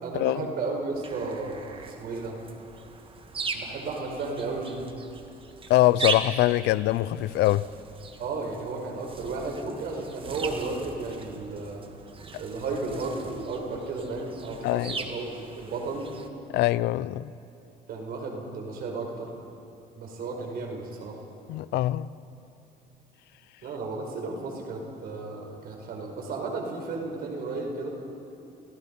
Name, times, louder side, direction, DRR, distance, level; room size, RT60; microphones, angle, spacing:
voice 1, 0.0-2.4 3.5-4.9 8.2-11.8 12.4-16.1 17.9-19.3 19.9-21.2 23.6-27.9, right 3 dB, 65° right, 5.0 m, -33 dB
sound 1, 0.9-16.3, right 4 dB, 30° right, 1.9 m, -39 dB
voice 2, 5.7-7.7 14.6-15.0 16.5-17.3 21.5-22.1, left 16 dB, 80° left, 0.5 m, -23 dB
29.5 x 17.0 x 5.5 m
cardioid pair, 110°, 17 cm